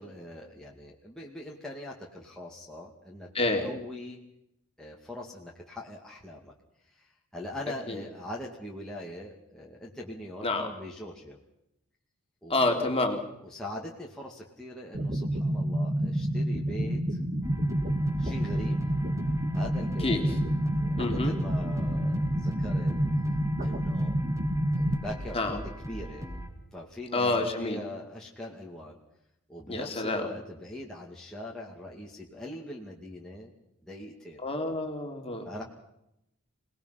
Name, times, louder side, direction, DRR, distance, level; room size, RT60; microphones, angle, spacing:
voice 1, 0.0-3.3 3.6-4.2 4.8-6.5 6.9-11.4 12.4-13.0 13.5-17.2 18.2-18.8 19.5-20.2 20.8-22.9 23.6-24.2 24.7-25.6 25.9-26.3 26.7-29.0 29.5-33.5 33.8-34.4 35.4-35.6, left 1 dB, 5° left, -3 dB, 2.3 m, -42 dB
voice 2, 3.3-3.7 7.9-8.0 10.4-10.7 12.5-13.2 20.0-20.3 21.0-21.3 25.3-25.6 27.1-27.8 29.7-30.3 34.4-35.6, left 2 dB, 25° left, 3 dB, 3.1 m, -28 dB
sound 1, 14.9-24.9, right 1 dB, 35° right, 2.1 m, -28 dB
sound 2, 17.4-26.5, equal, 15° right, 5.5 m, -40 dB
28.0 x 19.0 x 5.9 m, 0.82 s
head